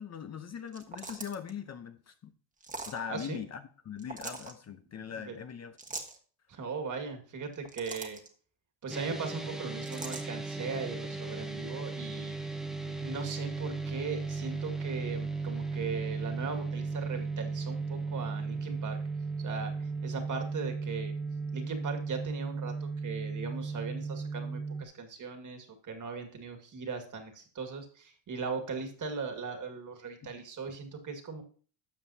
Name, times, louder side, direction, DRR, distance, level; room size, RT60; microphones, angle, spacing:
voice 1, 0.0-2.3 2.9-5.8 30.2-30.3, left 7 dB, 35° left, 0.8 m, -41 dB
sound 1, 0.7-1.5 2.6-3.0 4.0-4.5 5.8-6.2 7.4-8.3 9.8-10.2, right 3 dB, 15° right, 1.4 m, -41 dB
voice 2, 3.1-3.4 5.2-5.4 6.5-8.2 8.8-12.4 12.9-19.0 19.4-21.1 21.5-31.4, right 4 dB, 40° right, 2.0 m, -39 dB
sound 2, 8.9-24.8, right 4 dB, ahead, 0.9 m, -36 dB
12.5 x 7.1 x 2.8 m
cardioid pair, 100°, 46 cm